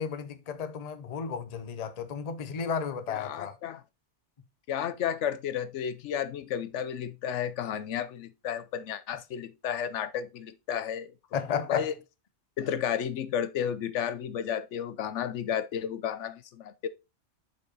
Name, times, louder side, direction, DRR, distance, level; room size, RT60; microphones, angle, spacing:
voice 1, 0.0-3.6 11.3-11.9, left 6 dB, 40° left, 0.7 m, -33 dB
voice 2, 3.1-3.8 4.7-11.1 11.7-11.9 12.6-16.9, left 9 dB, 80° left, 1.0 m, -32 dB
7.4 x 5.3 x 3.9 m
omnidirectional pair, 1.2 m